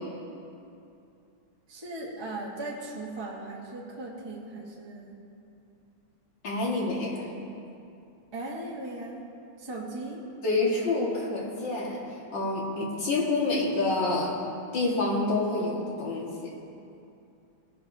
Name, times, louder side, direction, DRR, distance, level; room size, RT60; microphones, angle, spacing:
voice 1, 1.7-5.2 8.3-9.2 9.6-10.2, right 2 dB, 15° right, -3 dB, 1.2 m, -38 dB
voice 2, 6.4-7.3 10.4-12.1 12.3-14.4 14.7-16.5, left 2 dB, 65° left, -3 dB, 2.6 m, -28 dB
18.5 x 11.5 x 2.8 m, 2.6 s
omnidirectional pair, 2.2 m